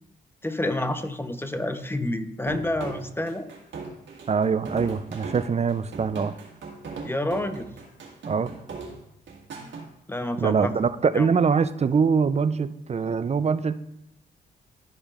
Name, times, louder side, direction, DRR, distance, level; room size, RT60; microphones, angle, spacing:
voice 1, 0.4-3.5 7.0-7.7 10.1-10.7 11.1-11.3, left 1 dB, 10° left, 9 dB, 0.8 m, -28 dB
sound 1, 2.5-9.9, right 4 dB, 70° right, 1.8 m, -38 dB
voice 2, 4.3-6.3 8.3-8.5 10.4-13.8, right 5 dB, 35° right, 13 dB, 0.5 m, -23 dB
12.0 x 5.0 x 2.5 m, 0.81 s
supercardioid pair, 50°, 19 cm